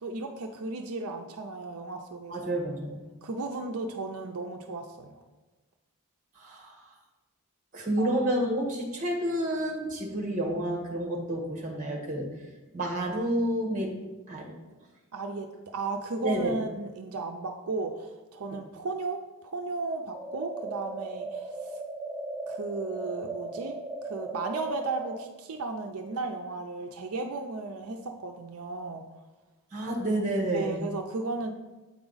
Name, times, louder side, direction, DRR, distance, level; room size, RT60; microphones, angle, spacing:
voice 1, 0.0-2.5 3.2-5.2 8.0-8.1 15.1-15.5 15.7-21.8 22.5-23.7 24.0-29.1 30.5-31.5, right 3 dB, 80° right, 4 dB, 0.5 m, -35 dB
voice 2, 2.3-3.0 6.3-6.8 7.7-12.3 12.7-14.5 16.2-16.6 18.5-18.6 29.7-30.8, right 1 dB, 35° right, 0 dB, 1.3 m, -30 dB
sound 1, 20.1-25.2, right 3 dB, 15° right, 0.8 m, -37 dB
7.8 x 4.9 x 3.9 m, 1.2 s
head